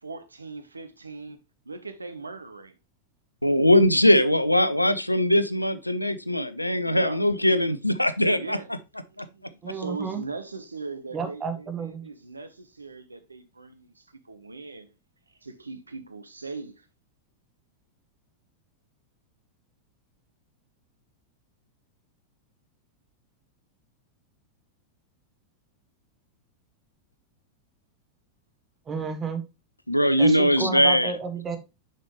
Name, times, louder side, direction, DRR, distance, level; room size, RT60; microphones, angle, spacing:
voice 1, 0.0-1.4 1.6-2.8 6.8-7.2 8.3-8.7 9.0-14.9 15.4-16.9, right 3 dB, 80° right, 0.8 m, -39 dB
voice 2, 3.4-8.6 9.2-9.3 29.9-31.2, equal, 85° left, 0.5 m, -21 dB
voice 3, 9.6-10.2 11.1-12.0 28.9-29.4 30.2-31.6, right 5 dB, 20° right, 1.3 m, -31 dB
6.6 x 5.6 x 3.0 m
figure-of-eight pair, 90°, 0 cm